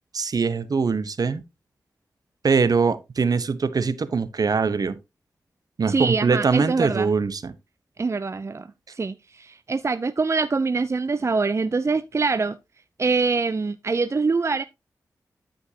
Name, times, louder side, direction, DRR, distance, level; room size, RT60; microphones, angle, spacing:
voice 1, 0.1-1.4 2.4-5.0 5.8-7.5, right 5 dB, 65° right, 1.0 m, -22 dB
voice 2, 5.9-7.1 8.0-12.6 13.0-14.6, right 4 dB, 40° right, 0.5 m, -24 dB
12.5 x 5.3 x 2.8 m
cardioid pair, 45°, 7 cm